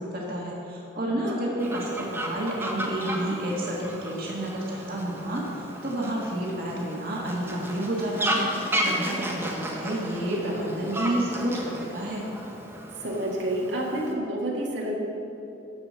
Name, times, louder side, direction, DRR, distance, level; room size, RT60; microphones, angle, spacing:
voice 1, 0.0-1.8 2.1-12.2, right 1 dB, 55° right, -3 dB, 1.6 m, -30 dB
Fowl, 1.6-14.1, right 1 dB, 15° right, 1.1 m, -34 dB
voice 2, 13.0-14.9, right 1 dB, 75° right, -3 dB, 1.8 m, -29 dB
12.0 x 5.0 x 7.4 m, 2.9 s
head